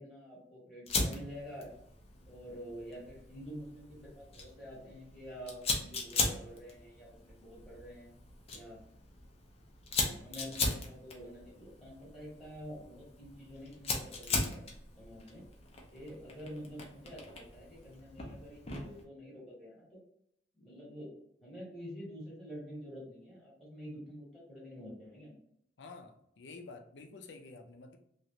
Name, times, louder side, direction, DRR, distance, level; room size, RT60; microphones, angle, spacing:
voice 1, 0.0-1.7 2.3-8.1 8.5-8.8 9.9-14.7 15.0-15.4 15.9-20.0 20.6-21.1 21.4-25.4, equal, ahead, -7 dB, 1.4 m, -48 dB
Fire, 0.9-19.0, left 3 dB, 35° left, 0.6 m, -39 dB
voice 2, 25.8-28.0, left 3 dB, 80° left, 5 dB, 0.5 m, -50 dB
3.0 x 2.4 x 2.8 m, 0.74 s
head